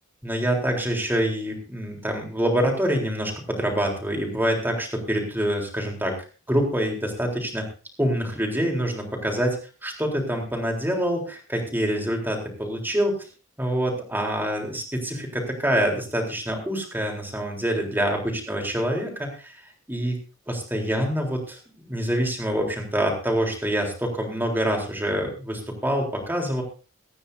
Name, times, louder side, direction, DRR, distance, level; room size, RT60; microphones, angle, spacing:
voice 1, 0.2-6.1 6.5-7.7 8.0-9.6 9.8-13.2 13.6-19.5 19.9-20.2 20.5-21.6 21.9-26.6, equal, 10° right, 1 dB, 3.8 m, -26 dB
24.0 x 9.9 x 2.7 m, 0.36 s
head